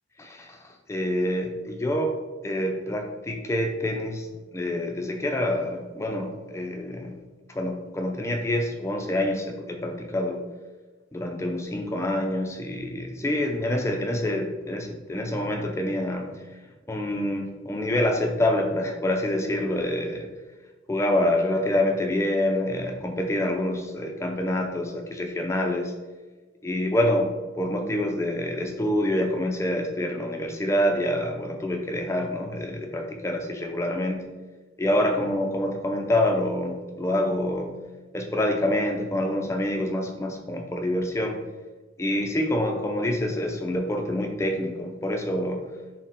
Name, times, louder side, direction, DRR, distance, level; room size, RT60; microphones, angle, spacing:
voice 1, 0.2-0.6 0.9-2.2 2.4-7.2 7.5-10.4 11.1-16.4 16.9-20.3 20.9-25.9 26.6-34.3 34.8-37.8 38.1-41.4 42.0-45.7, left 1 dB, 15° left, 3 dB, 0.3 m, -26 dB
4.1 x 2.1 x 3.6 m, 1.3 s
head